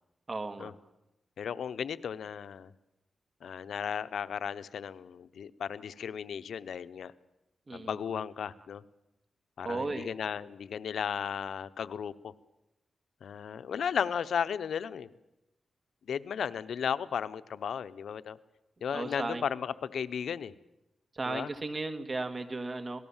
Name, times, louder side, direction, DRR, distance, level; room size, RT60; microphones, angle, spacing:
voice 1, 0.3-0.7 7.7-8.0 9.6-10.1 18.9-19.5 21.1-23.0, right 3 dB, 35° right, 8 dB, 1.9 m, -35 dB
voice 2, 1.4-2.7 3.4-7.1 7.7-8.8 9.6-12.3 13.2-15.1 16.1-18.4 18.8-20.5 21.2-21.5, left 7 dB, 85° left, 13 dB, 0.8 m, -35 dB
26.5 x 19.0 x 7.3 m, 0.92 s
wide cardioid pair, 110°, 0 cm